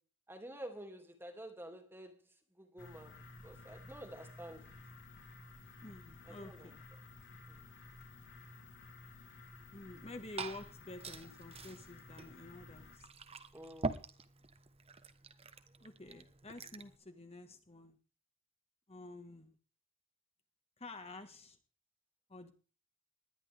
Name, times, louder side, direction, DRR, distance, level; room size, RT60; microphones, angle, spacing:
voice 1, 0.3-2.1 2.6-3.2 3.4-4.7 6.3-6.7 7.5-7.7 13.5-14.1, right 1 dB, 10° right, 2.5 m, -50 dB
sound 1, 2.8-13.0, left 2 dB, 55° left, 3.8 m, -55 dB
voice 2, 5.8-6.8 9.7-13.1 15.8-18.0 18.9-19.6 20.8-21.6 22.3-22.5, left 2 dB, 30° left, 1.6 m, -50 dB
Liquid, 9.9-17.0, right 3 dB, 30° right, 1.1 m, -46 dB
19.5 x 12.0 x 3.5 m
head